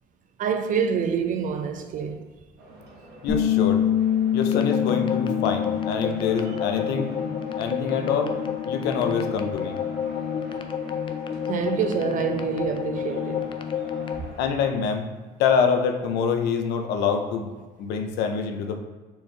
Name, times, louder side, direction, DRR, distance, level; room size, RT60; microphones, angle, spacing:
voice 1, 0.4-2.3 11.4-13.5, right 7 dB, 50° right, 0.5 m, -26 dB
sound 1, 2.6-14.7, right 1 dB, 80° right, 1.0 m, -46 dB
voice 2, 3.2-3.8 4.3-7.1 7.6-8.3 8.6-9.8 14.4-15.1 15.4-18.8, left 6 dB, 85° left, 0.6 m, -25 dB
Bass guitar, 3.3-7.6 7.9-9.5, left 9 dB, 45° left, 0.9 m, -27 dB
sound 2, 4.4-14.2, left 8 dB, 30° left, 0.3 m, -30 dB
4.4 x 3.0 x 3.3 m
cardioid pair, 110°, 17 cm